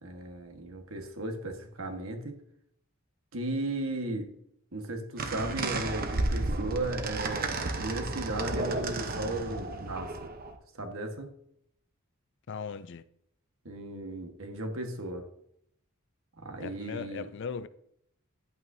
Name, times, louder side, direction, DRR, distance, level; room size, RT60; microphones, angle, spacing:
voice 1, 0.0-2.4 3.3-4.3 4.7-10.1 10.7-11.3 13.6-15.2 16.4-17.3, right 2 dB, 75° right, 1.5 m, -35 dB
sound 1, 5.2-10.5, right 2 dB, 45° right, 0.9 m, -32 dB
voice 2, 12.5-13.0 16.6-17.7, left 6 dB, 55° left, 0.4 m, -38 dB
11.0 x 8.7 x 2.7 m
head